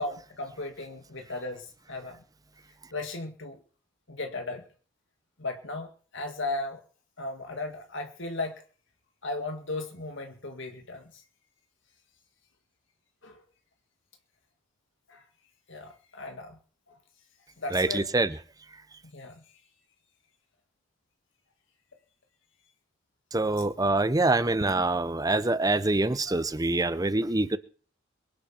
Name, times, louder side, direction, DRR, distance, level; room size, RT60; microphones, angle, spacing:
voice 1, 0.0-2.2 2.9-3.6 4.1-4.7 5.4-6.8 7.2-8.6 9.2-11.2 13.2-13.4 15.1-15.3 15.7-16.6 16.9-17.0 17.6-18.1 19.0-19.6 26.3-26.4, left 2 dB, 65° left, 5 dB, 2.0 m, -36 dB
voice 2, 17.7-18.3 23.3-27.6, right 2 dB, 20° right, 14 dB, 0.8 m, -25 dB
23.0 x 10.5 x 4.5 m, 0.41 s
head